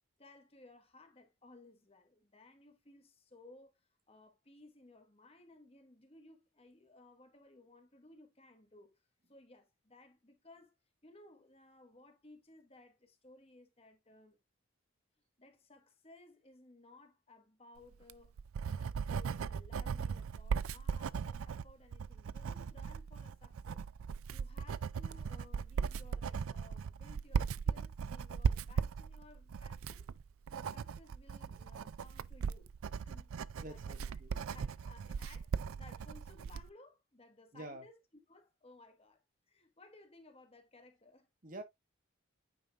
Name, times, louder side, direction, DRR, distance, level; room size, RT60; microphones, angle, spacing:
voice 1, 0.2-10.7 11.0-14.4 15.4-23.8 24.3-30.1 30.5-32.7 33.0-34.0 34.3-38.0 38.3-41.3, left 2 dB, 30° left, 1.4 m, -60 dB
Writing, 17.9-36.7, right 6 dB, 90° right, 0.4 m, -38 dB
voice 2, 33.6-34.3 37.5-37.8 41.4-41.6, right 1 dB, 40° right, 1.4 m, -47 dB
9.1 x 5.3 x 2.4 m
head